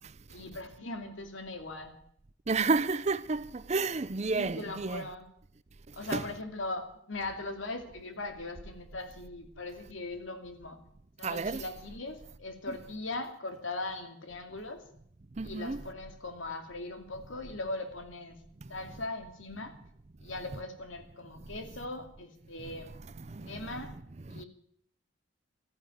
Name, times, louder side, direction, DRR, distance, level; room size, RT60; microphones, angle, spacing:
voice 1, 0.3-2.0 4.3-5.3 5.9-10.8 11.2-14.8 15.4-18.4 18.7-19.7 20.2-22.9 23.4-23.9 24.3-24.5, left 2 dB, 85° left, 2.5 m, -40 dB
voice 2, 2.5-5.0 5.9-6.3 11.2-11.6 12.7-12.8 15.3-15.8 18.6-18.7 23.2-23.8 24.3-24.4, right 4 dB, 35° right, 0.6 m, -31 dB
13.5 x 10.5 x 9.3 m
head